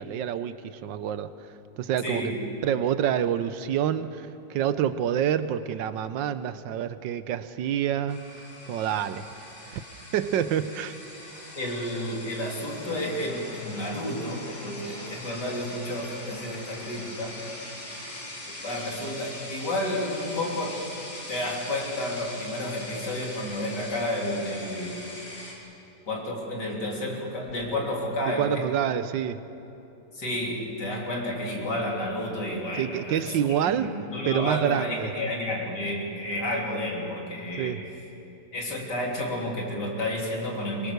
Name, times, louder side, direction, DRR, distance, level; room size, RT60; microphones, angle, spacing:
voice 1, 0.0-1.3 1.8-2.3 2.6-8.2 8.7-9.3 9.6-9.8 10.1-10.9 28.4-29.4 32.8-33.9 34.2-35.1 37.6-37.9, right 9 dB, 80° right, 12 dB, 1.4 m, -27 dB
voice 2, 2.0-2.4 11.6-17.4 18.5-20.8 21.3-25.0 26.1-28.7 30.1-33.3 33.6-37.8 38.5-40.9, left 1 dB, 65° left, -2 dB, 3.9 m, -31 dB
sound 1, 8.1-25.5, left 1 dB, 80° left, 3.9 m, -41 dB
24.0 x 21.5 x 6.7 m, 2.8 s
omnidirectional pair, 2.0 m